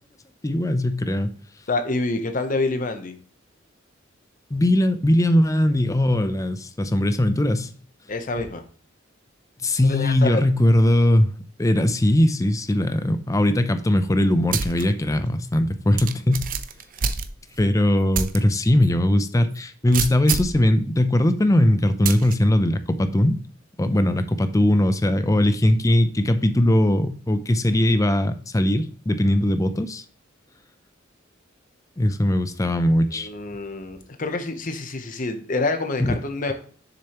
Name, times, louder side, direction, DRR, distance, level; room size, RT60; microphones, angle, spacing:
voice 1, 0.4-1.3 4.5-7.7 9.6-11.3 11.6-16.4 17.6-23.4 23.8-30.0 32.0-33.3 36.0-36.2, left 1 dB, 15° left, 0.5 m, -20 dB
voice 2, 1.7-3.2 8.1-8.6 9.7-10.4 33.1-36.5, left 3 dB, 40° left, 0.9 m, -27 dB
sound 1, 14.5-14.8 15.3-15.4 16.0-17.7 18.1-18.4 18.8-18.9 19.9-20.6 22.1-22.4, right 6 dB, 45° right, 0.5 m, -27 dB
6.9 x 6.4 x 3.0 m
head